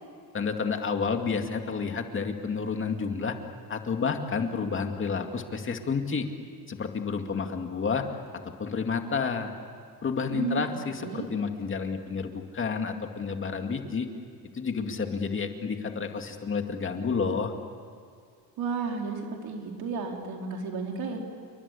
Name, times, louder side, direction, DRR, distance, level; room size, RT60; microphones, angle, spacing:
voice 1, 0.3-3.4 3.7-6.3 6.7-8.0 8.6-9.5 10.0-14.1 14.5-17.5, left 5 dB, 30° left, 5 dB, 2.2 m, -30 dB
voice 2, 10.3-10.6 11.0-11.3 18.6-21.2, right 4 dB, 70° right, 1 dB, 4.7 m, -32 dB
28.5 x 23.5 x 8.5 m, 2.4 s
cardioid pair, 145°, 38 cm